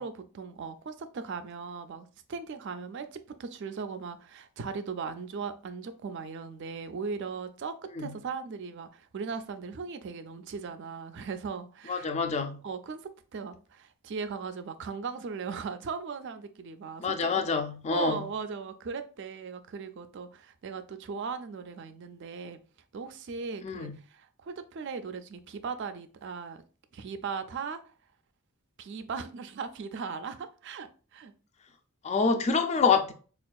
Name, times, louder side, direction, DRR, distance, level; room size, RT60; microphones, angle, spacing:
voice 1, 0.0-12.1 12.6-17.5 17.9-22.6 22.9-26.6 26.9-27.8 28.8-31.3, right 5 dB, 55° right, 0.4 m, -38 dB
voice 2, 11.9-12.6 17.0-18.2 23.6-23.9 32.0-33.1, left 5 dB, 30° left, 0.3 m, -26 dB
4.3 x 2.4 x 2.3 m
head